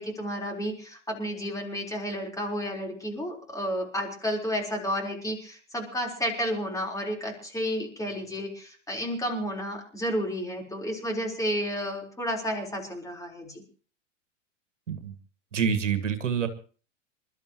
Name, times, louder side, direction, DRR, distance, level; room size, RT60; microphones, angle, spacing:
voice 1, 0.0-13.6, equal, 10° left, 0 dB, 4.0 m, -31 dB
voice 2, 15.5-16.5, right 7 dB, 70° right, 10 dB, 1.9 m, -27 dB
27.5 x 12.5 x 3.0 m, 0.39 s
figure-of-eight pair, 90°, 38 cm